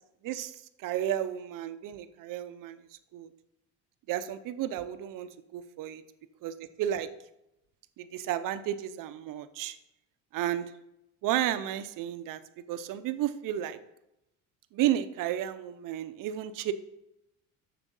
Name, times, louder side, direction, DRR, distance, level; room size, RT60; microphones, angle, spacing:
voice 1, 0.8-2.8 3.1-3.3 4.1-6.0 6.4-7.1 8.0-9.8 10.3-10.7 11.2-12.4 12.7-13.8 14.7-16.7, right 11 dB, 65° right, 11 dB, 0.7 m, -32 dB
7.3 x 6.8 x 5.4 m, 0.87 s
cardioid pair, 135°, 35 cm